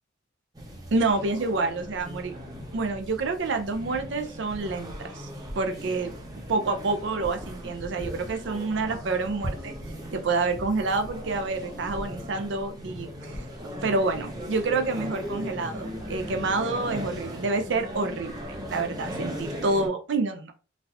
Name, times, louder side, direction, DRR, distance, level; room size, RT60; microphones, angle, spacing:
sound 1, 0.5-19.9, equal, 20° right, 0.7 m, -38 dB
voice 1, 0.9-2.3 2.7-5.3 5.6-6.1 6.5-9.7 10.1-13.5 13.8-18.4 18.7-20.5, right 3 dB, 70° right, 6 dB, 0.4 m, -28 dB
3.9 x 2.3 x 2.7 m, 0.35 s
head